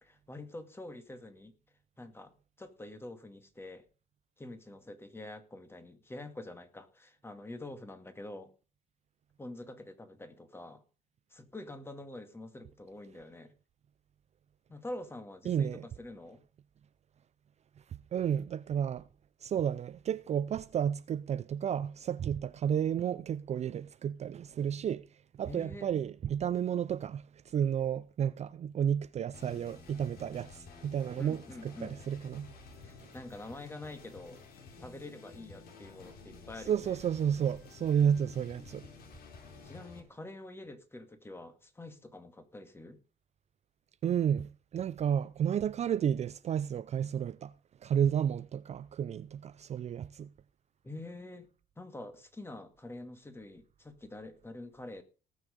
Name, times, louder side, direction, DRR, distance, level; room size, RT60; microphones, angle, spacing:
voice 1, 0.0-1.6 2.0-2.3 2.6-3.9 4.4-8.5 9.4-10.8 11.3-13.5 14.7-16.4 25.4-26.0 31.2-32.0 32.8-34.4 34.8-37.0 39.6-43.0 50.8-51.5 51.8-55.0, left 2 dB, 15° left, 2.2 m, -46 dB
voice 2, 15.5-15.8 18.1-19.1 19.4-25.1 25.4-32.5 36.7-38.9 44.0-47.5 47.8-50.3, right 8 dB, 40° right, 0.5 m, -32 dB
sound 1, 29.3-40.0, left 4 dB, 60° left, 4.1 m, -52 dB
18.5 x 6.4 x 5.2 m
cardioid pair, 110°, 17 cm